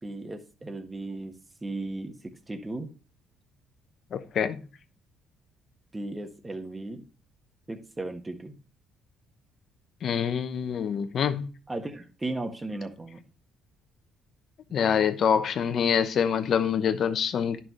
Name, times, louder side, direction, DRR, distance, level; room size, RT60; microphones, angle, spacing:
voice 1, 0.0-1.3 1.6-2.9 5.9-7.1 7.7-8.5 11.7-13.2, right 2 dB, 20° right, 1.5 m, -36 dB
voice 2, 4.1-4.6 10.0-11.5 14.7-17.6, left 7 dB, 55° left, 0.9 m, -25 dB
10.5 x 5.8 x 3.1 m
supercardioid pair, 75°, 0 cm